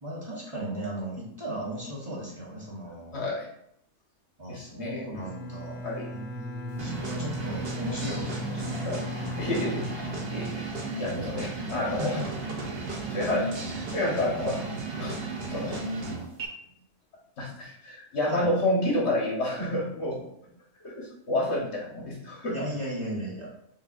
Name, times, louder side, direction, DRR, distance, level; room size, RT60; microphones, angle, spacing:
voice 1, 0.0-3.2 4.4-5.8 6.1-8.8 11.0-11.6 12.0-12.3 18.3-18.5 22.5-23.5, equal, 25° right, -6 dB, 1.0 m, -36 dB
voice 2, 3.1-3.5 4.5-5.1 5.8-6.1 8.9-9.0 9.4-10.7 11.0-12.2 13.1-14.6 15.0-15.8 17.4-20.2 20.8-22.6, left 1 dB, 60° left, -3 dB, 1.5 m, -30 dB
Bowed string instrument, 5.1-11.2, left 2 dB, 90° left, 1.0 m, -38 dB
sound 1, 6.8-16.5, right 3 dB, 55° right, 0.9 m, -34 dB
6.2 x 2.6 x 2.5 m, 0.73 s
omnidirectional pair, 1.3 m